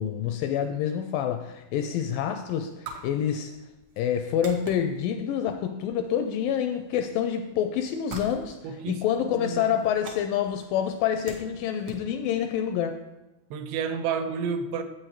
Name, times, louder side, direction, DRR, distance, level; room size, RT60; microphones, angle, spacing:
voice 1, 0.0-3.5 4.0-8.6 8.9-13.0, left 9 dB, 80° left, 7 dB, 2.0 m, -27 dB
sound 1, 1.2-12.9, right 3 dB, 65° right, 1.8 m, -47 dB
voice 2, 8.6-9.6 13.5-14.8, right 6 dB, 85° right, 8 dB, 2.6 m, -31 dB
8.1 x 6.4 x 4.5 m, 1.0 s
omnidirectional pair, 4.3 m